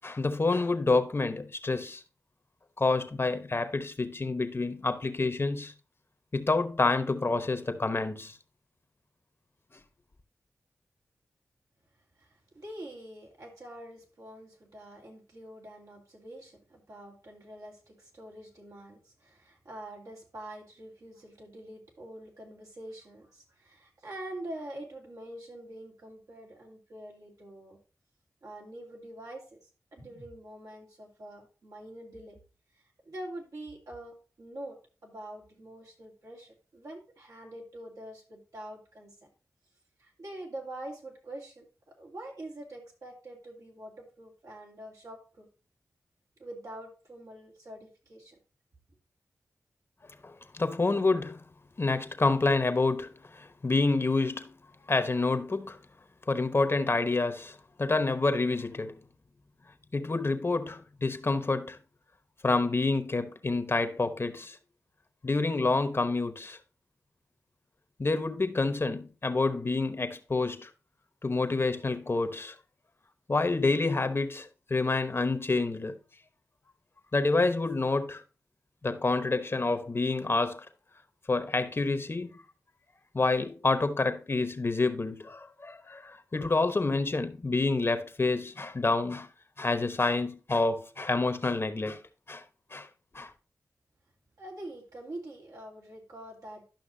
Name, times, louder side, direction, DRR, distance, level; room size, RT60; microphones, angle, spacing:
voice 1, 0.0-2.0 2.8-5.7 6.3-8.4 50.2-51.4 51.8-54.5 54.9-55.8 56.3-59.0 59.9-61.8 62.4-64.6 65.2-66.6 68.0-70.7 71.2-72.5 73.3-76.0 77.1-78.2 78.8-80.7 81.3-82.4 83.1-89.3 89.6-92.0 92.3-92.4 92.7-92.9 93.1-93.3, left 3 dB, 45° left, 1.0 m, -28 dB
voice 2, 12.2-27.8 28.4-29.6 29.9-32.4 33.1-34.8 35.0-39.1 40.0-45.5 46.4-48.4 94.4-96.7, right 1 dB, 75° right, 2.5 m, -45 dB
12.0 x 5.8 x 2.7 m
cardioid pair, 40°, 6 cm